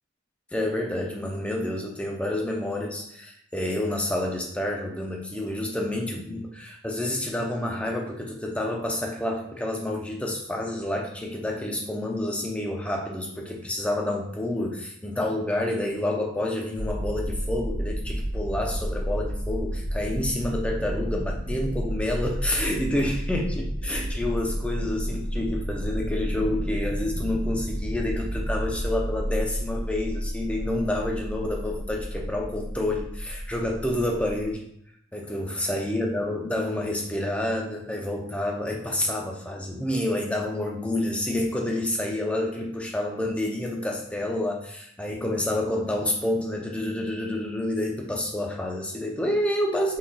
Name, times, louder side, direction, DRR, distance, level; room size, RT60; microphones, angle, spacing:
voice 1, 0.5-34.7 35.1-50.0, left 1 dB, 5° left, 0 dB, 0.5 m, -29 dB
sound 1, 16.7-34.5, equal, 80° left, 1.3 m, -31 dB
3.8 x 3.7 x 2.2 m, 0.71 s
head